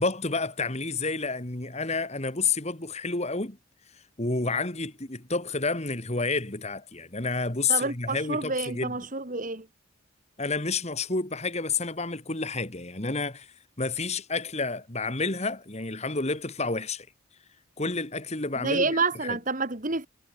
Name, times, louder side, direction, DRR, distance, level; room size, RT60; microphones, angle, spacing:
voice 1, 0.0-3.6 4.2-9.0 10.4-13.5 13.8-17.1 17.8-18.9 19.2-19.4, left 3 dB, 30° left, 2.0 m, -30 dB
voice 2, 7.7-9.7 18.6-20.1, right 3 dB, 35° right, 1.9 m, -28 dB
head